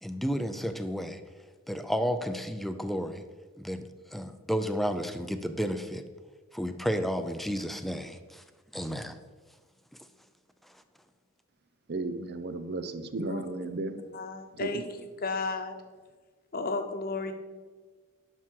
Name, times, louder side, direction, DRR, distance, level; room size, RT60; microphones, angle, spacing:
voice 1, 0.0-1.2 1.7-3.2 3.6-6.0 6.5-8.4 8.7-9.2, equal, ahead, 0.5 m, -32 dB
voice 2, 11.9-14.0 14.5-14.8, right 2 dB, 50° right, 0.7 m, -34 dB
voice 3, 14.1-14.9 15.2-15.8 16.5-17.3, left 3 dB, 45° left, 1.0 m, -33 dB
11.0 x 6.0 x 4.6 m
head